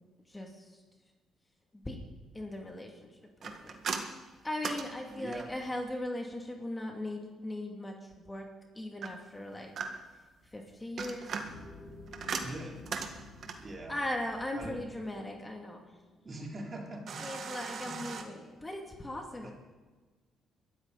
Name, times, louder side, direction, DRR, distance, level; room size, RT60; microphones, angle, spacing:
voice 1, 0.3-0.7 1.7-2.0 2.3-3.1 3.4-3.7 4.4-8.5 8.7-9.7 10.5-11.4 13.9-15.9 17.2-19.5, left 1 dB, 15° left, 2 dB, 2.6 m, -38 dB
sound 1, 3.4-5.7 9.0-10.2 10.8-13.7 17.1-18.2, right 5 dB, 60° right, 1.8 m, -39 dB
voice 2, 5.1-5.5 12.4-12.8 13.6-14.0 14.6-14.8 16.2-17.2 17.8-18.1 19.4-19.5, right 1 dB, 35° right, 0 dB, 3.6 m, -42 dB
sound 2, 11.4-19.0, left 2 dB, 75° left, 5.1 m, -54 dB
22.5 x 13.0 x 4.2 m, 1.3 s
cardioid pair, 90°, 0 cm